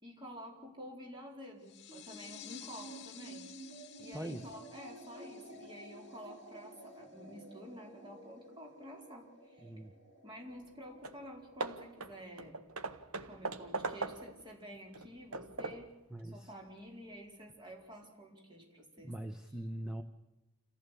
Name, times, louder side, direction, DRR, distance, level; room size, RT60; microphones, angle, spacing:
voice 1, 0.0-3.4 4.0-9.7 10.2-12.6 13.2-15.9 16.3-19.1, equal, 20° right, 0 dB, 4.7 m, -50 dB
sound 1, 1.6-7.0, left 12 dB, 55° left, 1.0 m, -54 dB
sound 2, 1.9-14.5, right 2 dB, 60° right, 7.8 m, -53 dB
voice 2, 4.1-4.5 9.6-9.9 16.1-16.5 19.0-20.0, right 1 dB, 5° right, 6 dB, 1.0 m, -42 dB
Hammer / Wood, 10.7-10.8 11.0-11.3 11.6-14.5 14.9-16.0, right 3 dB, 90° right, 1.3 m, -40 dB
29.0 x 15.0 x 8.5 m, 1.0 s
head